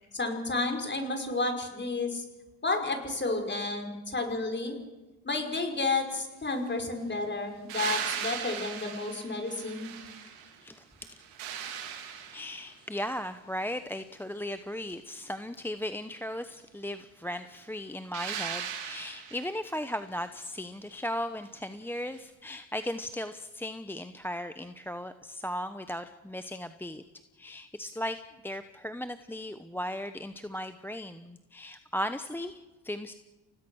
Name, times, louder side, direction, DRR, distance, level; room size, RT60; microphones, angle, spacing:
voice 1, 0.2-2.2 2.6-4.8 5.2-9.9, left 3 dB, 25° left, 4 dB, 5.5 m, -31 dB
sound 1, 7.7-10.6 11.0-12.8 18.1-19.6 22.2-22.3, right 8 dB, 90° right, 3.9 m, -38 dB
voice 2, 12.3-27.0 27.4-33.1, left 1 dB, 5° left, 10 dB, 0.9 m, -37 dB
29.5 x 17.5 x 6.4 m, 1.1 s
supercardioid pair, 80°, 42 cm